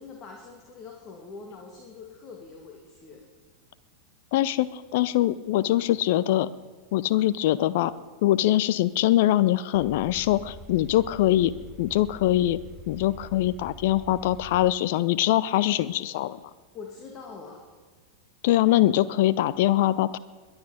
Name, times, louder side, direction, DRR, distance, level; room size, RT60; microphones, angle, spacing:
voice 1, 0.0-3.2 16.7-17.6, left 4 dB, 30° left, 1 dB, 2.3 m, -43 dB
voice 2, 4.3-6.5 6.9-7.9 8.2-11.5 11.8-12.6 12.9-16.4 18.4-20.2, left 14 dB, 50° left, 17 dB, 0.5 m, -23 dB
sound 1, 9.7-14.7, equal, 20° right, 1.5 m, -45 dB
22.0 x 10.5 x 5.1 m, 1.5 s
figure-of-eight pair, 90°, 0 cm